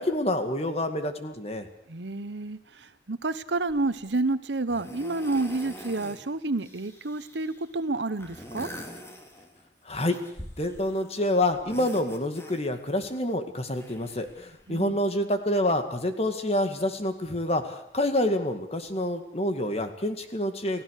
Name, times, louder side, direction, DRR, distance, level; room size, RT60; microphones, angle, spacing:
voice 1, 0.0-1.7 9.9-10.2 10.6-20.8, left 1 dB, 35° left, 7 dB, 2.0 m, -27 dB
voice 2, 1.9-8.7 14.7-15.0, right 2 dB, 85° right, 13 dB, 1.1 m, -29 dB
sound 1, 3.7-4.0 4.7-6.2 6.5-7.7 8.1-9.7 10.1-11.2 11.5-12.9 13.7-14.8 15.7-15.8, equal, 15° left, 2.7 m, -44 dB
29.5 x 16.0 x 6.5 m, 0.71 s
head